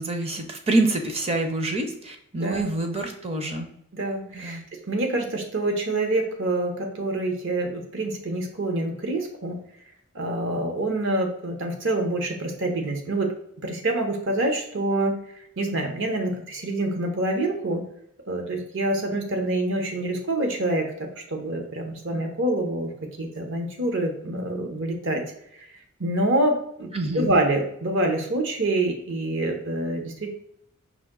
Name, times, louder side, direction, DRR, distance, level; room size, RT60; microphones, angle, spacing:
voice 1, 0.0-3.7 4.3-4.6 26.9-27.3, right 2 dB, 25° right, 4 dB, 0.6 m, -26 dB
voice 2, 2.4-2.7 3.9-4.6 4.9-9.5 10.1-13.3 13.6-15.1 15.6-17.8 18.3-20.9 21.3-22.9 23.2-25.2 26.0-26.9 27.1-30.3, right 2 dB, 60° right, 3 dB, 0.9 m, -26 dB
5.1 x 2.6 x 3.7 m, 0.74 s
head